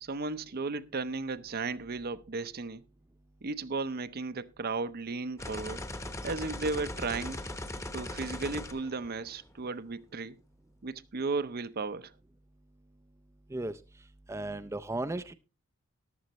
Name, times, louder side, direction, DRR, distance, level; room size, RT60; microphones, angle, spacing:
voice 1, 0.0-2.8 3.4-5.8 6.2-7.4 7.9-10.4 10.8-12.1, right 3 dB, 50° right, 0.7 m, -35 dB
sound 1, 5.4-9.6, left 1 dB, 15° left, 1.0 m, -39 dB
voice 2, 14.3-15.3, right 2 dB, 15° right, 0.5 m, -35 dB
14.5 x 11.5 x 3.0 m
head